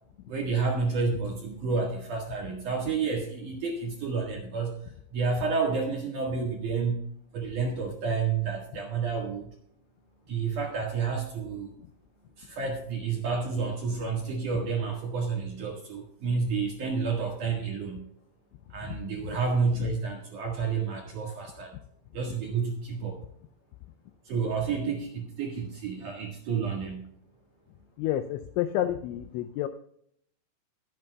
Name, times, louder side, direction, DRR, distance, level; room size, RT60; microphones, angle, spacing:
voice 1, 0.3-4.8 5.1-7.0 7.3-9.5 10.3-11.7 12.4-18.1 18.7-21.7 22.1-23.2 24.3-27.1, right 5 dB, 55° right, -1 dB, 2.4 m, -30 dB
voice 2, 28.0-29.7, left 12 dB, 85° left, 8 dB, 2.6 m, -30 dB
20.5 x 8.9 x 2.3 m, 0.69 s
omnidirectional pair, 5.8 m